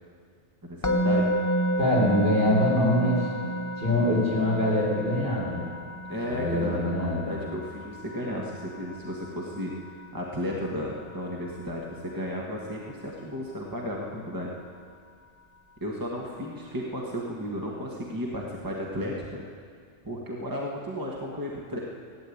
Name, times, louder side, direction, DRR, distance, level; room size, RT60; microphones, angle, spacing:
voice 1, 0.6-1.3 6.1-9.7 10.1-14.5 15.8-19.4 20.0-21.8, equal, 15° right, -3 dB, 1.6 m, -34 dB
Musical instrument, 0.8-11.9, equal, 20° left, 0.7 m, -32 dB
voice 2, 1.8-3.3 3.8-5.6 6.3-7.3, left 1 dB, 55° right, -6 dB, 4.7 m, -24 dB
16.0 x 9.7 x 8.5 m, 2.1 s
omnidirectional pair, 1.2 m